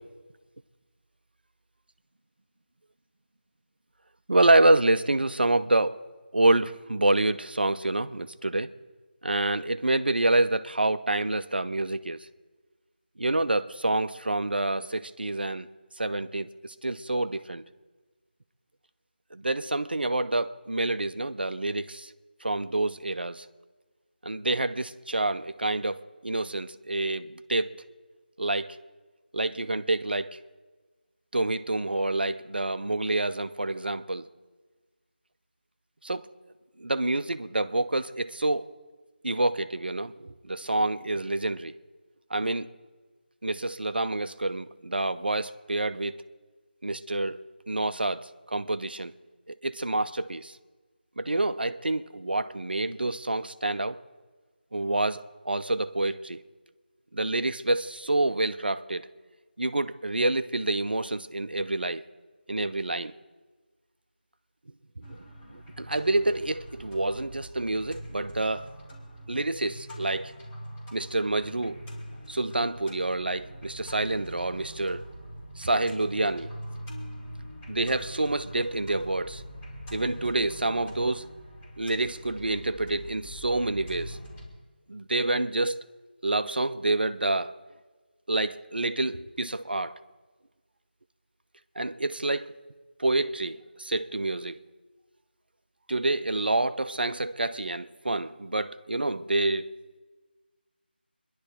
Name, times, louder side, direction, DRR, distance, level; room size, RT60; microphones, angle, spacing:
voice 1, 4.3-6.0 6.3-8.7 9.2-12.3 13.2-15.7 16.0-17.7 19.3-22.1 22.4-23.4 24.2-27.7 28.4-28.8 29.3-30.4 31.3-34.3 36.0-36.3 36.8-38.7 39.2-41.7 42.3-42.7 43.4-46.2 46.8-47.4 47.7-49.1 49.5-50.6 51.2-54.0 54.7-56.4 57.1-59.1 59.6-62.0 62.5-63.1 65.0-65.2 65.5-68.7 69.3-70.3 70.9-71.8 72.3-75.0 75.6-76.5 77.7-79.4 79.9-81.3 81.8-84.2 84.9-85.8 86.2-87.5 88.3-90.0 91.8-92.5 93.0-94.6 95.9-99.7, right 2 dB, 60° right, 0.8 m, -27 dB
sound 1, 65.0-84.4, equal, 10° left, 3.1 m, -43 dB
26.5 x 11.5 x 3.8 m
figure-of-eight pair, 165°, 6 cm